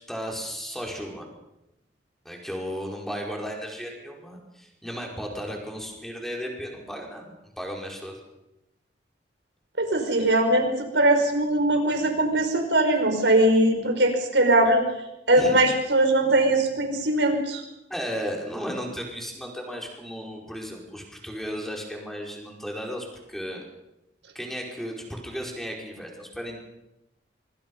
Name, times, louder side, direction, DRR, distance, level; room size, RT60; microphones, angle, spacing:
voice 1, 0.1-1.3 2.2-8.2 15.3-15.5 17.9-23.7 24.3-26.6, equal, ahead, -1 dB, 5.1 m, -35 dB
voice 2, 9.8-14.8 15.3-17.6, right 1 dB, 85° right, 4 dB, 5.7 m, -21 dB
25.0 x 24.5 x 5.6 m, 0.90 s
head